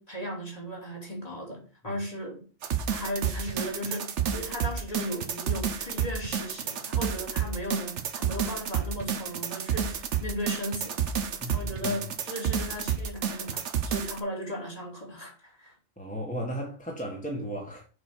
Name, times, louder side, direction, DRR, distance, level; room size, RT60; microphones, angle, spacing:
voice 1, 0.0-2.4 2.9-11.0 11.5-15.7, equal, 30° left, 2.8 m, -36 dB
sound 1, 2.6-14.2, right 8 dB, 65° right, 1.2 m, -30 dB
voice 2, 11.4-12.0 16.0-17.9, equal, 5° left, 1.8 m, -35 dB
6.8 x 5.3 x 6.4 m
omnidirectional pair, 1.3 m